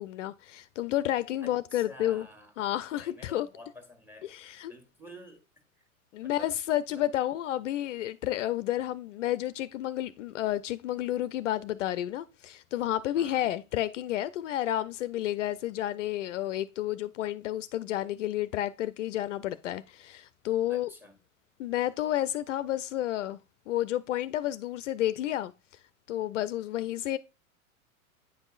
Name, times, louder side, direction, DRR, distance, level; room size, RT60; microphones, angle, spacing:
voice 1, 0.0-2.3 2.6-3.5 4.3-4.7 6.1-20.9 21.6-23.4 23.7-25.5 26.1-27.2, left 13 dB, 60° left, 0.5 m, -31 dB
voice 2, 1.4-2.5 2.9-4.3 4.7-5.4 5.8-5.9 6.2-6.5 6.9-7.0 13.2-13.6 20.7-21.2, left 1 dB, 5° right, 1.5 m, -49 dB
8.9 x 5.3 x 2.4 m
hypercardioid pair, 100°, 42 cm